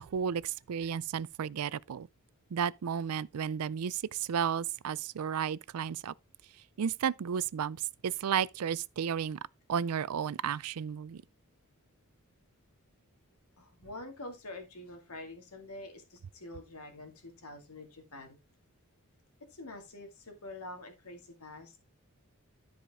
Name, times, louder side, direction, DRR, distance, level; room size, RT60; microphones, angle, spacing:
voice 1, 0.0-2.1 2.5-6.1 6.8-9.4 9.7-11.2, right 8 dB, 80° right, 0.4 m, -33 dB
voice 2, 13.6-18.4 19.4-21.8, left 2 dB, 85° left, 2.3 m, -46 dB
12.5 x 5.1 x 3.6 m
head